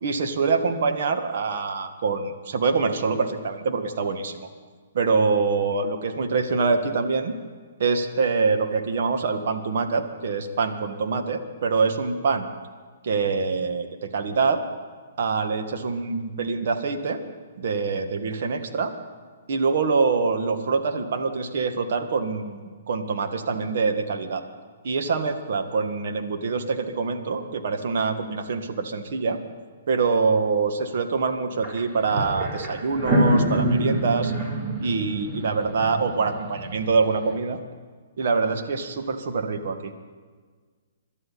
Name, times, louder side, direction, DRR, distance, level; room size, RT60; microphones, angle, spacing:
voice 1, 0.0-4.4 4.9-7.3 7.8-12.5 13.0-14.6 15.2-17.2 17.6-18.9 19.5-22.6 22.9-24.4 24.8-29.4 29.9-34.3 34.8-37.6 38.2-39.9, right 4 dB, 60° right, 6 dB, 1.7 m, -25 dB
sound 1, 31.6-37.0, right 1 dB, 30° right, 3.5 m, -26 dB
27.0 x 12.5 x 4.1 m, 1.5 s
figure-of-eight pair, 125°, 0 cm